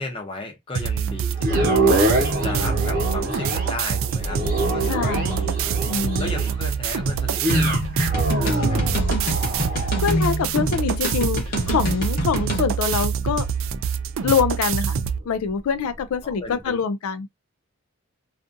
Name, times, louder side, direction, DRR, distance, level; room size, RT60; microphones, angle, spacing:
voice 1, 0.0-4.4 4.7-7.8 8.4-8.9 16.2-16.8, left 2 dB, 25° left, 0.7 m, -35 dB
sound 1, 0.7-15.2, right 7 dB, 60° right, 0.3 m, -26 dB
sound 2, 1.4-15.6 16.1-16.2, right 1 dB, 40° right, 0.9 m, -26 dB
voice 2, 4.9-5.6 5.9-6.3 9.7-13.5 14.2-15.0 15.3-17.3, left 6 dB, 75° left, 0.3 m, -25 dB
sound 3, 7.5-12.7, left 1 dB, 40° left, 0.9 m, -26 dB
2.5 x 2.5 x 2.5 m
head